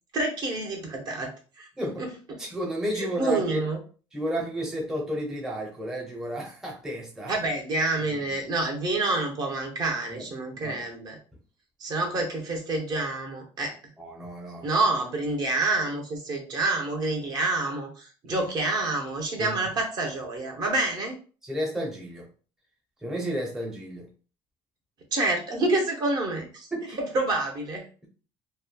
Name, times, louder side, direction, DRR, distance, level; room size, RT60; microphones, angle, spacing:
voice 1, 0.1-1.3 1.6-1.7 2.0-2.1 3.0-3.8 7.3-11.2 11.8-13.8 14.6-21.2 25.1-26.7 27.0-27.9, right 2 dB, 45° right, 0.9 m, -28 dB
voice 2, 2.4-3.7 4.1-7.3 7.9-8.0 10.1-10.3 10.5-10.8 14.0-14.7 18.3-18.5 19.4-19.5 21.4-22.3 23.0-24.1 26.7-27.0, right 1 dB, 5° right, 0.6 m, -32 dB
3.0 x 2.2 x 2.3 m
cardioid pair, 135°, 10 cm